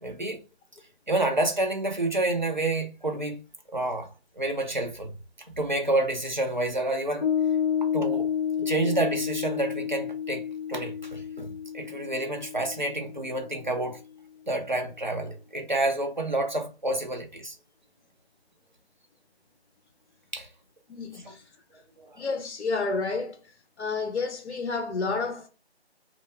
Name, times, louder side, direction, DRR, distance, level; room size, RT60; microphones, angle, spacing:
voice 1, 0.0-0.4 1.1-3.4 3.7-4.1 4.4-5.1 5.6-7.2 7.9-8.3 8.7-14.0 14.5-17.6 20.3-20.5 22.0-22.1, right 2 dB, 45° right, 0.4 m, -29 dB
Piano, 7.2-14.0, left 8 dB, 65° left, 0.9 m, -30 dB
voice 2, 20.9-21.4 22.2-23.4 23.8-25.5, left 4 dB, 85° left, 0.5 m, -30 dB
2.2 x 2.1 x 2.9 m
figure-of-eight pair, 175°, 33 cm